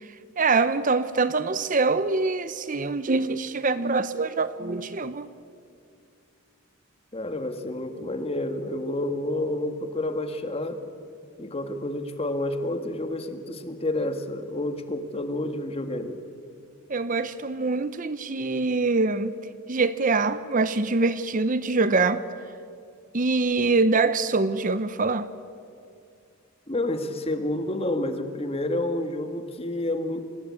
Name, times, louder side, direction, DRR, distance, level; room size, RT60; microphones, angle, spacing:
voice 1, 0.4-5.3 16.9-19.3 19.7-22.2 23.1-25.3, right 3 dB, 40° right, 0.7 m, -24 dB
voice 2, 7.1-10.8 11.4-16.2 26.7-30.2, left 1 dB, 30° left, 1.7 m, -29 dB
27.5 x 19.5 x 8.6 m
head